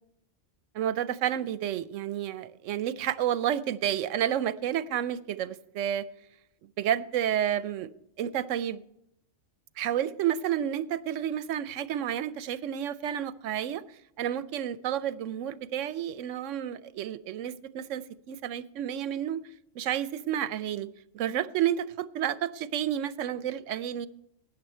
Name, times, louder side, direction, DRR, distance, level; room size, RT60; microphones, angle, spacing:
voice 1, 0.7-6.0 6.8-7.9 8.2-8.8 9.8-13.8 14.2-19.4 19.7-20.9 21.1-24.1, right 10 dB, 85° right, 1.0 m, -30 dB
13.0 x 9.3 x 4.4 m
omnidirectional pair, 1.3 m